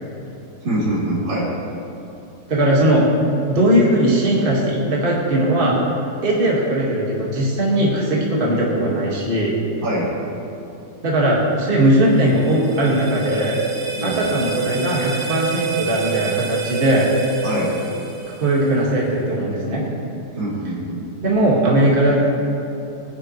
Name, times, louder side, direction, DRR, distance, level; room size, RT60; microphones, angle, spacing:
voice 1, 0.6-1.5 9.8-10.1 14.0-14.3 17.4-17.7 20.3-21.0, right 1 dB, 75° right, -8 dB, 4.2 m, -24 dB
voice 2, 2.5-3.0 3.4-5.7 6.2-9.5 11.0-13.5 14.0-17.1 18.4-19.8 21.2-22.3, right 1 dB, 30° right, -5 dB, 2.0 m, -18 dB
sound 1, 11.9-18.9, right 6 dB, 60° right, 1.7 m, -28 dB
21.0 x 9.7 x 3.2 m, 2.9 s
omnidirectional pair, 2.1 m